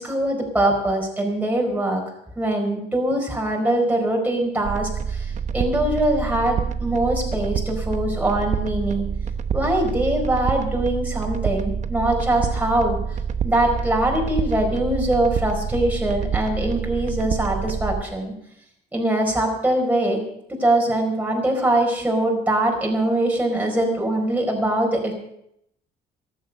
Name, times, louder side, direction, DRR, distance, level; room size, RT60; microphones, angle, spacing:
voice 1, 0.0-2.0 2.4-9.1 9.5-13.0 13.4-18.3 18.9-20.2 20.5-25.1, right 1 dB, 10° right, 0 dB, 4.5 m, -22 dB
sound 1, 4.6-18.0, right 7 dB, 45° right, 1.0 m, -27 dB
14.5 x 11.5 x 6.6 m, 0.75 s
cardioid pair, 110°, 17 cm